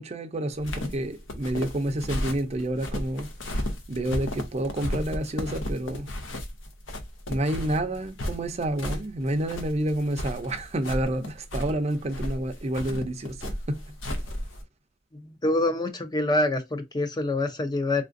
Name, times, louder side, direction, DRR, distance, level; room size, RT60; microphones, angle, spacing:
voice 1, 0.0-3.3 3.9-6.1 7.3-13.8, right 1 dB, 35° right, 0.5 m, -29 dB
sound 1, 0.5-14.6, left 1 dB, 85° left, 0.8 m, -34 dB
voice 2, 15.2-18.0, left 2 dB, 20° left, 0.5 m, -26 dB
3.6 x 2.5 x 2.5 m
head